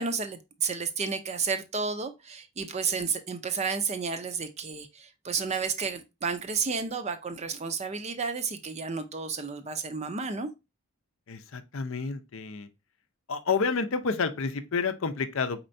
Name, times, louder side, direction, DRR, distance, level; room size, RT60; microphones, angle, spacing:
voice 1, 0.0-10.5, right 5 dB, 30° right, 0.5 m, -31 dB
voice 2, 11.3-12.7 13.3-15.6, left 5 dB, 60° left, 0.6 m, -29 dB
4.3 x 4.3 x 2.6 m
head